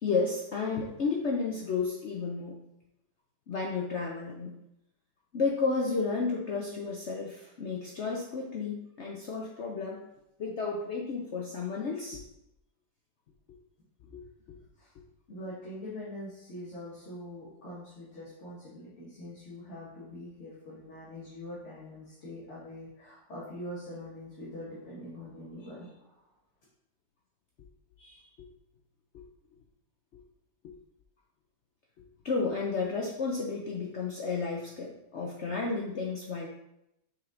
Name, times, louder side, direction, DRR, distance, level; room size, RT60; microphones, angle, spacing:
voice 1, 0.0-2.6 3.5-4.5 5.3-10.0 10.4-12.2 14.1-14.2 28.0-28.5 29.1-29.2 30.6-30.7 32.2-36.5, left 4 dB, 65° left, -1 dB, 0.6 m, -32 dB
voice 2, 15.3-26.2, left 1 dB, 40° left, -8 dB, 1.9 m, -43 dB
6.2 x 4.6 x 3.8 m, 0.85 s
omnidirectional pair, 2.0 m